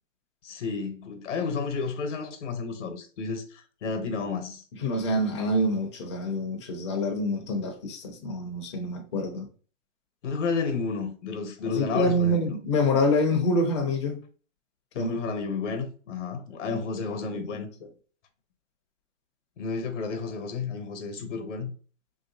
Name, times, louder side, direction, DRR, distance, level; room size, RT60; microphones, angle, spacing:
voice 1, 0.4-4.6 10.2-12.4 15.0-17.7 19.6-21.7, left 4 dB, 65° left, 0.9 m, -31 dB
voice 2, 4.8-9.5 11.6-14.2 14.9-15.2 16.7-16.8 17.1-17.6, left 1 dB, 25° left, 0.5 m, -26 dB
3.0 x 2.8 x 2.7 m
hypercardioid pair, 145°, 39 cm